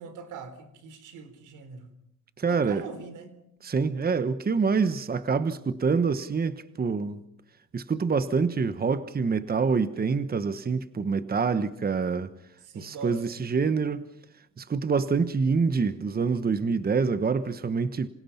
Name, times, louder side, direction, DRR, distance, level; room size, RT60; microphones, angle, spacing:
voice 1, 0.0-1.9 2.5-3.3 12.6-13.3, right 5 dB, 90° right, 3.7 m, -41 dB
voice 2, 2.4-2.8 3.6-7.2 7.7-12.3 12.7-14.1 14.6-18.1, right 5 dB, 30° right, 1.2 m, -26 dB
27.0 x 27.0 x 5.8 m
cardioid pair, 90°, 30 cm